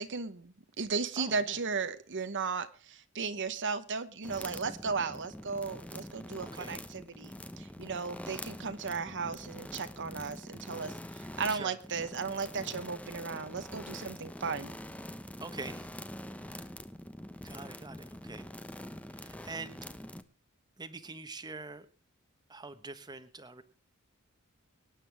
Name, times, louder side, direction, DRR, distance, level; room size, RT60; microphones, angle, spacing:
voice 1, 0.0-14.7, right 5 dB, 60° right, 1.1 m, -36 dB
voice 2, 1.2-1.6 6.4-6.7 11.3-12.1 15.4-15.9 17.4-18.5 19.1-19.9 20.8-21.9 22.5-23.6, right 3 dB, 20° right, 1.2 m, -45 dB
sound 1, 4.2-20.2, left 1 dB, 5° left, 0.9 m, -45 dB
24.0 x 10.0 x 3.5 m
head